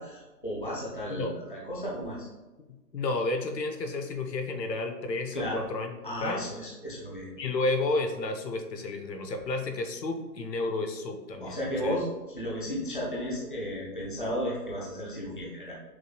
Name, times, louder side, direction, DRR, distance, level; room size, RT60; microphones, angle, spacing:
voice 1, 0.0-2.3 5.3-5.6 6.0-7.3 11.4-15.7, equal, 35° left, -4 dB, 0.5 m, -34 dB
voice 2, 2.9-6.4 7.4-12.0, left 2 dB, 80° left, 5 dB, 0.9 m, -31 dB
6.1 x 3.1 x 2.2 m, 1.1 s
hypercardioid pair, 175°, 49 cm